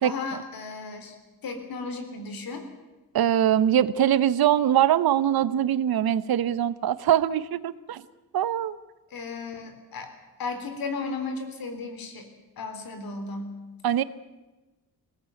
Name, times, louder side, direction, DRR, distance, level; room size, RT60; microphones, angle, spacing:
voice 1, 0.0-1.2 1.4-2.7 9.1-10.1 10.4-12.3 12.6-13.5, left 4 dB, 70° left, 7 dB, 3.6 m, -34 dB
voice 2, 3.1-8.0 8.3-8.8 13.8-14.0, right 10 dB, 75° right, 16 dB, 0.9 m, -22 dB
21.0 x 17.5 x 9.1 m, 1.1 s
cardioid pair, 130°, 37 cm